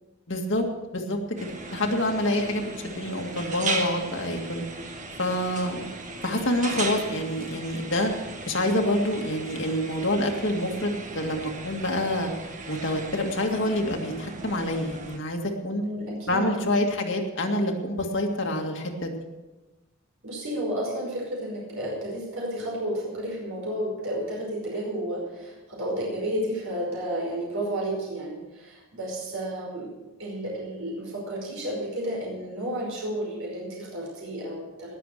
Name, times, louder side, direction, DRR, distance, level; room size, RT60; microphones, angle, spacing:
voice 1, 0.3-0.7 0.9-1.2 1.7-4.6 5.2-5.9 6.2-8.1 8.5-12.3 12.7-15.8 16.3-19.1, left 1 dB, 55° left, 2 dB, 2.0 m, -27 dB
sound 1, 1.4-15.2, right 3 dB, 35° right, 1.6 m, -37 dB
voice 2, 15.8-16.6 20.2-29.9 30.2-34.9, right 1 dB, 70° right, -3 dB, 5.3 m, -32 dB
19.5 x 7.6 x 6.6 m, 1.1 s
head